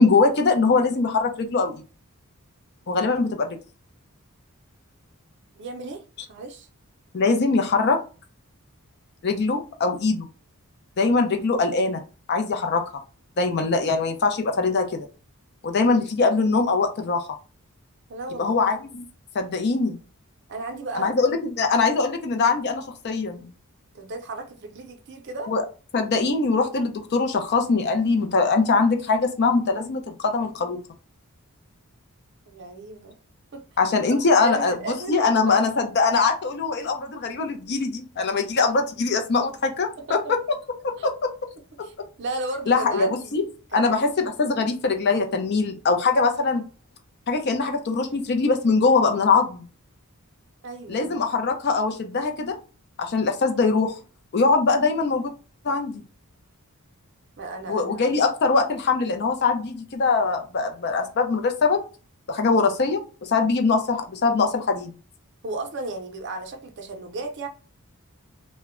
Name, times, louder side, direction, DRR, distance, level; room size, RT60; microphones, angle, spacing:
voice 1, 0.0-1.8 2.9-3.5 7.1-8.0 9.2-10.3 11.0-12.0 12.3-12.8 13.4-15.1 15.6-17.2 18.4-19.0 19.3-20.0 20.9-23.5 25.5-25.6 25.9-30.8 33.8-40.2 40.8-41.3 42.7-43.4 43.7-44.1 44.4-46.6 47.3-49.6 50.9-52.6 53.0-54.0 54.3-55.3 55.6-56.0 57.7-61.8 62.3-63.0 63.3-64.9, left 4 dB, 50° left, 0.5 m, -22 dB
voice 2, 5.5-6.0 6.3-6.7 18.1-18.6 20.5-21.1 23.9-25.5 32.5-33.2 33.5-33.6 34.1-35.6 40.0-40.3 41.0-41.1 41.8-43.3 43.7-44.0 50.6-51.2 57.4-58.0 65.4-67.5, right 2 dB, 50° right, 0.5 m, -34 dB
2.1 x 2.0 x 3.6 m
head